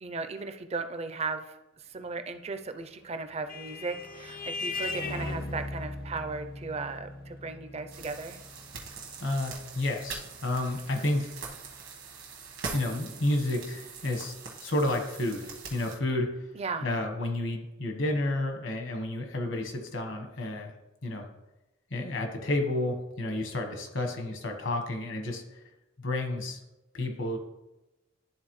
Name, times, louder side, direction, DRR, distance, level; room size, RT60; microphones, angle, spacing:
voice 1, 0.0-8.4 16.5-16.9, right 4 dB, 30° right, 9 dB, 0.4 m, -36 dB
Vehicle horn car horn honking, 2.9-11.8, left 3 dB, 45° left, 0.7 m, -39 dB
sound 1, 7.9-16.0, right 5 dB, 75° right, 1.3 m, -43 dB
voice 2, 9.2-11.3 12.7-14.3 14.6-16.3 16.8-20.7 21.0-21.3 21.9-25.6 26.0-26.6 26.9-27.4, left 1 dB, 65° left, 3 dB, 1.2 m, -31 dB
11.5 x 3.9 x 3.1 m, 0.99 s
head